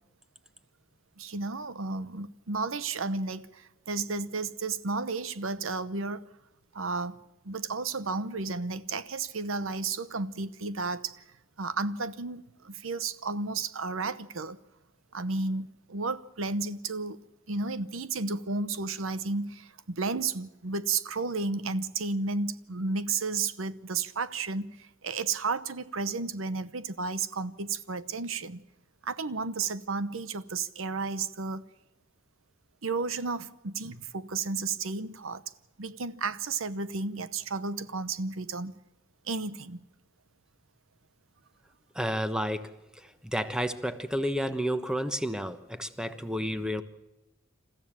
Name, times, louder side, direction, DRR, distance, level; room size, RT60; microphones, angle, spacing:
voice 1, 1.2-6.3 6.7-7.2 7.4-11.2 11.6-14.6 15.1-17.2 17.5-28.6 29.0-31.6 32.8-35.4 35.8-38.7 39.2-39.8, right 4 dB, 85° right, 1.0 m, -32 dB
voice 2, 41.9-46.8, equal, 5° right, 1.1 m, -31 dB
28.0 x 14.5 x 7.5 m
head